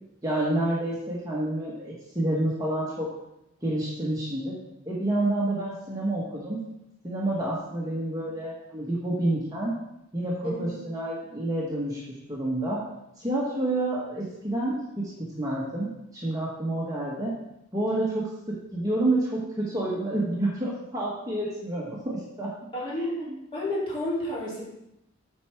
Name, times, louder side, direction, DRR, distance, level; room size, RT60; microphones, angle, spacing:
voice 1, 0.2-3.1 3.6-4.6 4.9-6.6 7.0-9.8 10.1-12.0 12.3-12.8 13.2-17.4 17.7-18.2 18.7-22.5 22.9-23.4, right 1 dB, 15° right, -5 dB, 1.1 m, -29 dB
voice 2, 10.4-10.7 22.7-23.1 23.5-24.6, left 1 dB, 25° left, -7 dB, 2.6 m, -30 dB
8.1 x 4.5 x 4.5 m, 0.85 s
head